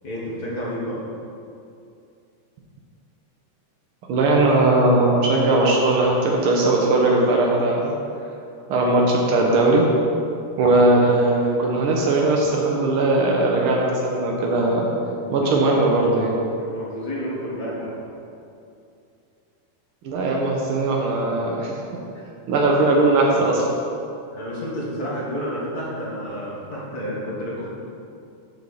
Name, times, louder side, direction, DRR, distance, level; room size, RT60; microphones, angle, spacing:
voice 1, 0.0-1.0 14.4-14.7 15.1-15.7 16.6-18.0 24.3-27.7, equal, 40° left, -6 dB, 1.7 m, -30 dB
voice 2, 4.1-8.0 8.7-9.9 10.6-14.9 15.3-16.4 20.0-21.7 22.5-23.7, right 2 dB, 90° right, -1 dB, 1.1 m, -19 dB
8.2 x 4.2 x 7.0 m, 2.5 s
omnidirectional pair, 3.6 m